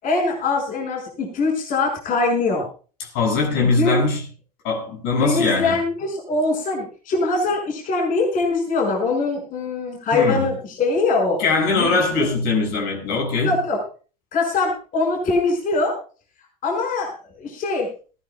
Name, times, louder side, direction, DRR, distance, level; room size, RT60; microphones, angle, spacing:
voice 1, 0.0-2.7 3.6-4.0 5.2-11.4 11.8-12.3 13.4-13.8 14.3-16.0 16.6-17.1 17.4-17.9, left 3 dB, 40° left, 6.2 m, -22 dB
voice 2, 3.0-4.2 4.6-5.8 10.1-10.5 11.4-13.5, left 3 dB, 60° left, 6.9 m, -21 dB
21.0 x 16.0 x 2.4 m
hypercardioid pair, 80°, 20 cm